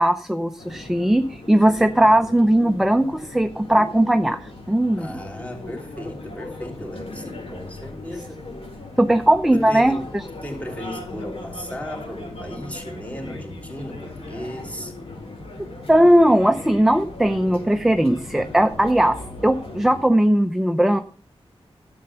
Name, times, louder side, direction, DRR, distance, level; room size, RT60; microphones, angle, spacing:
voice 1, 0.0-4.4 4.7-5.1 9.0-10.0 15.9-19.2 19.4-21.0, right 1 dB, 5° right, 0.7 m, -18 dB
sound 1, 0.6-20.0, left 2 dB, 80° left, 4.8 m, -38 dB
voice 2, 5.0-8.4 9.5-14.9, equal, 15° left, 3.2 m, -35 dB
12.0 x 7.9 x 5.8 m
wide cardioid pair, 115°, 10 cm